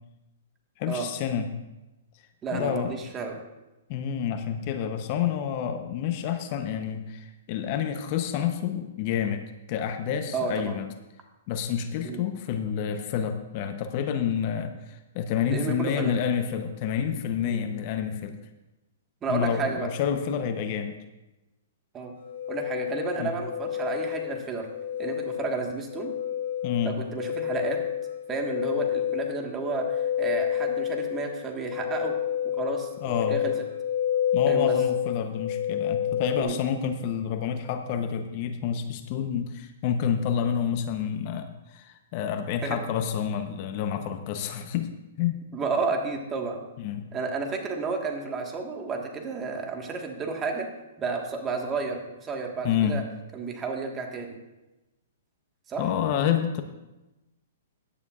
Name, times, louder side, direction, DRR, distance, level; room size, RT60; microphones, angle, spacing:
voice 1, 0.8-1.5 2.5-3.0 3.9-10.9 11.5-18.4 19.3-21.0 23.2-23.3 26.6-27.0 33.0-33.4 34.3-44.9 45.2-45.3 46.8-47.1 52.6-53.0 55.8-56.6, left 8 dB, 45° left, 7 dB, 0.9 m, -29 dB
voice 2, 2.4-3.4 10.3-10.8 12.0-12.2 15.5-16.1 17.4-17.6 19.2-19.9 21.9-22.1 22.5-24.7 25.0-26.1 26.8-27.8 28.3-32.2 32.6-33.5 34.5-34.7 36.4-36.6 42.6-42.8 45.5-46.6 47.1-50.7 51.0-53.0 53.3-54.4 55.7-55.9, right 4 dB, 20° right, 2 dB, 1.6 m, -31 dB
sound 1, 22.2-36.4, left 10 dB, 75° left, 3.5 m, -29 dB
16.5 x 10.5 x 2.5 m, 1.0 s
hypercardioid pair, 140°, 0 cm